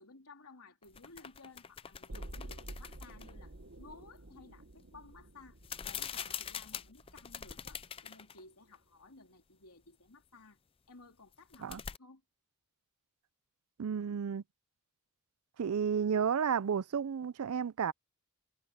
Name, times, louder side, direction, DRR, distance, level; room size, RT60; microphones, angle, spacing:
voice 1, 0.0-5.6 5.8-10.6 10.9-12.2, left 3 dB, 85° left, 3.3 m, -56 dB
sound 1, 0.8-3.3 5.6-8.4 8.7-8.8 11.3-12.0, left 8 dB, 25° left, 0.4 m, -44 dB
distant explosion, 2.1-8.1 8.4-8.5, right 1 dB, 60° right, 1.3 m, -50 dB
voice 2, 13.8-14.4 15.6-17.9, right 7 dB, 75° right, 0.4 m, -32 dB
head